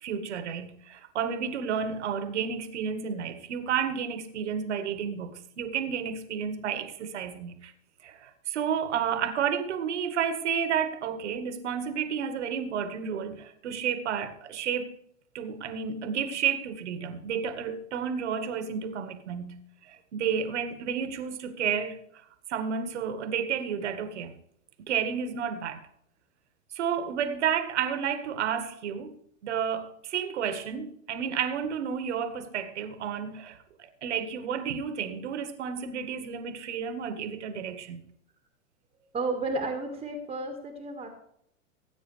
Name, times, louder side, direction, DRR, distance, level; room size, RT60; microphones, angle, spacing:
voice 1, 0.0-7.7 8.0-14.9 15.3-22.0 22.5-24.3 24.9-25.8 26.8-29.1 29.4-38.0, right 7 dB, 60° right, 1.9 m, -31 dB
voice 2, 39.1-41.1, right 2 dB, 15° right, 1.8 m, -32 dB
18.5 x 9.0 x 3.4 m
figure-of-eight pair, 100°, 39 cm